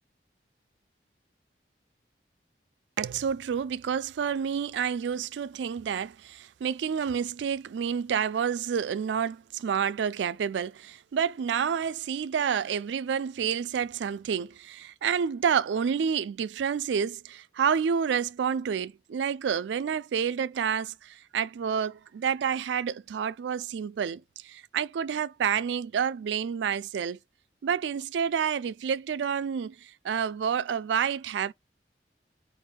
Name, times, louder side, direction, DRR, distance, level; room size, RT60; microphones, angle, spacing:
voice 1, 3.0-27.2 27.6-31.5, right 7 dB, 90° right, 0.3 m, -29 dB
4.7 x 2.6 x 3.6 m
head